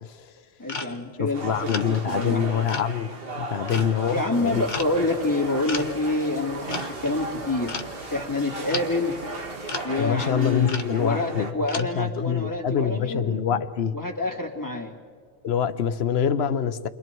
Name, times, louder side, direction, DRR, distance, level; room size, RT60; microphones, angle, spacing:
voice 1, 0.6-1.5 1.8-2.4 4.1-7.8 8.1-9.2 9.8-13.4 13.9-15.0, left 2 dB, 15° left, -1 dB, 2.5 m, -27 dB
sound 1, 0.7-1.2 1.7-1.9 2.7-2.9 3.7-4.0 4.7-5.0 5.7-6.0 6.7-6.9 7.7-7.9 8.7-8.9 9.7-9.9 10.7-10.9 11.7-11.9, left 4 dB, 40° left, 1.1 m, -33 dB
voice 2, 1.2-3.1 3.3-4.6 10.0-14.0 15.4-16.9, left 7 dB, 55° left, 12 dB, 1.0 m, -25 dB
sound 2, 1.3-11.5, right 2 dB, 45° right, 1.9 m, -36 dB
sound 3, 4.3-9.9, right 3 dB, 30° right, 1.2 m, -45 dB
29.0 x 24.0 x 4.6 m, 2.1 s
omnidirectional pair, 1.3 m